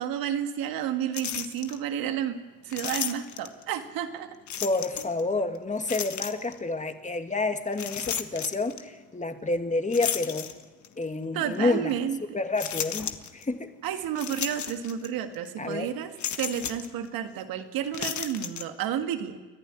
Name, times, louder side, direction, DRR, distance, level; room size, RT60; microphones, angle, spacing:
voice 1, 0.0-4.4 11.3-12.4 13.8-19.4, right 9 dB, 80° right, 8 dB, 1.8 m, -31 dB
sound 1, 1.1-1.8 2.7-3.6 4.5-5.2 5.9-6.6 7.7-8.8 9.9-11.0 11.5-11.6 12.6-13.5 14.2-15.1 15.3-15.5 16.2-16.9 17.9-18.7, left 9 dB, 55° left, 1.5 m, -33 dB
voice 2, 4.6-10.5 11.0-12.0 12.3-13.7 15.6-15.9, left 3 dB, 20° left, 7 dB, 2.2 m, -29 dB
29.5 x 11.5 x 9.9 m, 1.3 s
supercardioid pair, 65°, 35 cm